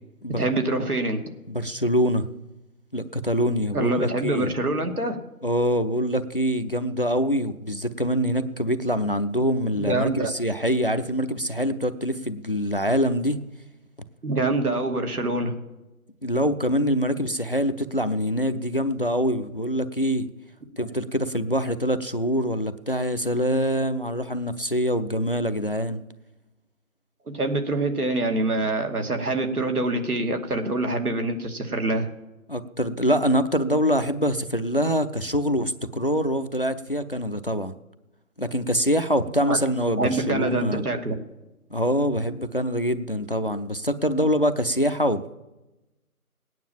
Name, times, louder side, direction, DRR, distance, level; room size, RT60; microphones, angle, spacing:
voice 1, 0.4-1.2 3.7-5.2 9.8-10.3 14.2-15.5 20.8-20.9 27.3-32.1 39.5-39.6 40.0-41.1, right 2 dB, 75° right, 5 dB, 2.6 m, -25 dB
voice 2, 1.5-2.3 2.9-4.5 5.4-13.4 16.2-20.3 20.8-26.0 32.5-37.7 38.4-40.8 41.7-45.3, equal, 40° left, 11 dB, 0.5 m, -24 dB
19.0 x 9.3 x 7.4 m, 1.0 s
figure-of-eight pair, 170°, 45 cm